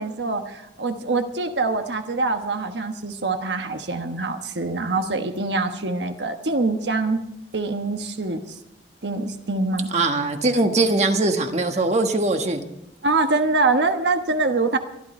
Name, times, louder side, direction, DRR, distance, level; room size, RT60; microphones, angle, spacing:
voice 1, 0.0-7.2 7.5-8.6 9.0-9.9 13.0-14.8, right 3 dB, 80° right, 6 dB, 1.2 m, -24 dB
voice 2, 9.9-12.6, right 2 dB, 40° right, 5 dB, 1.4 m, -21 dB
24.0 x 11.5 x 4.3 m, 0.85 s
head